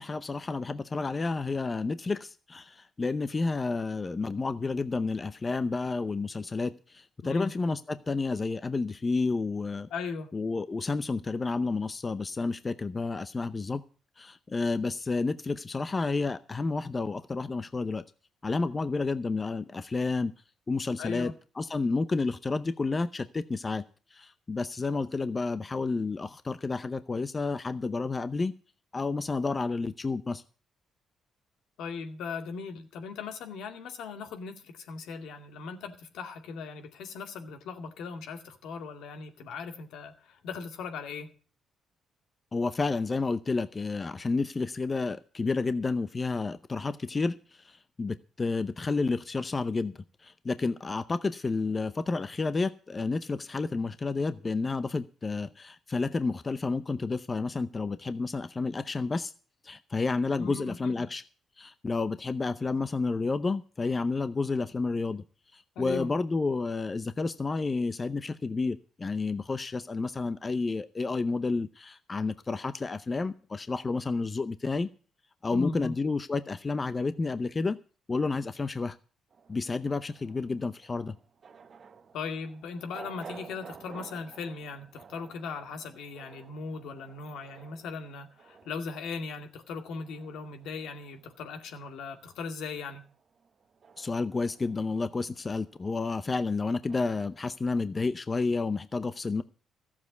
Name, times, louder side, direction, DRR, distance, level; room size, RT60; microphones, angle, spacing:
voice 1, 0.0-9.9 10.3-13.8 14.2-18.0 18.4-20.3 20.7-23.8 24.1-28.5 28.9-30.4 42.5-59.3 59.6-61.2 61.6-65.2 65.5-74.9 75.4-77.8 78.1-79.0 79.5-81.2 94.0-99.4, left 3 dB, 30° left, 13 dB, 0.6 m, -30 dB
voice 2, 9.9-10.3 21.0-21.3 31.8-41.3 60.4-61.0 65.8-66.1 75.5-75.9 82.1-93.0, left 5 dB, 80° left, 5 dB, 2.2 m, -38 dB
sound 1, 79.3-91.9 92.2-97.5, right 6 dB, 45° right, 1.2 m, -53 dB
14.0 x 7.3 x 8.1 m, 0.38 s
cardioid pair, 90°, 0 cm